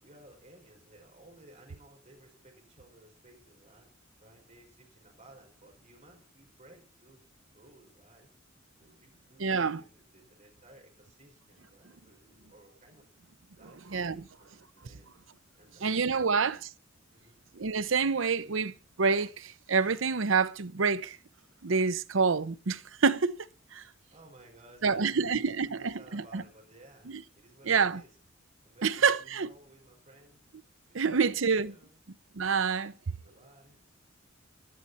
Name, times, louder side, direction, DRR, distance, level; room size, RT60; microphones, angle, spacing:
voice 1, 0.0-3.9 4.2-7.3 7.5-8.3 8.8-13.1 13.6-15.2 15.6-15.9 16.1-16.6 17.1-17.4 24.1-28.2 28.6-30.4 30.9-32.0 33.2-33.8, right 1 dB, 40° right, 5.3 m, -57 dB
voice 2, 9.4-9.8 13.9-14.2 15.8-16.6 17.5-18.7 19.0-21.2 21.6-23.3 23.7-23.8 24.8-26.4 27.7-28.0 28.8-29.5 30.9-31.7 32.3-33.2, right 5 dB, 90° right, 0.7 m, -27 dB
17.5 x 12.0 x 4.2 m
head